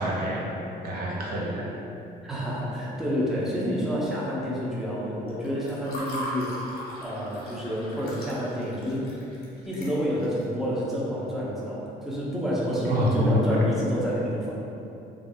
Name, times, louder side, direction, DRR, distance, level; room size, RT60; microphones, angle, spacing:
voice 1, 0.0-1.7 12.9-13.7, equal, 60° right, -3 dB, 0.5 m, -26 dB
voice 2, 2.2-6.7 7.0-9.1 9.6-14.6, equal, ahead, -7 dB, 0.6 m, -29 dB
Water / Fill (with liquid), 5.3-10.4, equal, 70° left, 0.9 m, -38 dB
2.4 x 2.0 x 3.6 m, 2.8 s
cardioid pair, 110°, 17 cm